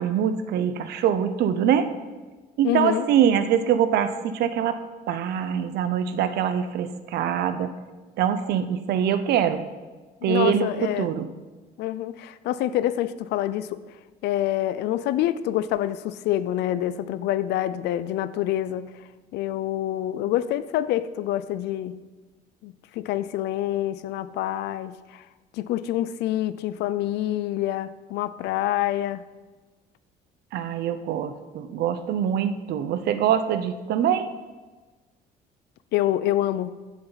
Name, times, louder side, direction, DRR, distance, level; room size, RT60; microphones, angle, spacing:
voice 1, 0.0-1.9 2.6-4.8 5.1-7.7 8.2-9.6 10.2-10.7 11.0-11.3 30.5-34.3, right 9 dB, 75° right, 11 dB, 0.8 m, -24 dB
voice 2, 2.6-3.1 10.3-11.1 11.8-13.8 14.2-19.1 19.3-22.0 22.6-25.2 25.5-29.3 35.9-36.7, left 13 dB, 80° left, 15 dB, 0.6 m, -26 dB
15.0 x 7.2 x 4.0 m, 1.3 s
cardioid pair, 110°, 17 cm